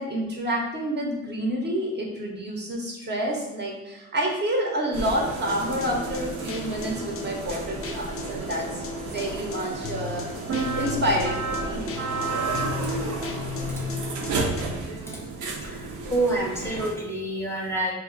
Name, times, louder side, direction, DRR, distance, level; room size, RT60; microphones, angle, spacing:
voice 1, 0.0-10.2 10.7-11.9, equal, 35° right, -1 dB, 0.7 m, -28 dB
sound 1, 4.9-16.9, right 3 dB, 75° right, 0.6 m, -32 dB
sound 2, 5.5-14.6, left 5 dB, 50° left, 0.4 m, -36 dB
voice 2, 15.6-17.9, right 2 dB, 10° left, -4 dB, 0.6 m, -27 dB
2.4 x 2.2 x 3.8 m, 0.97 s
cardioid pair, 90°, 30 cm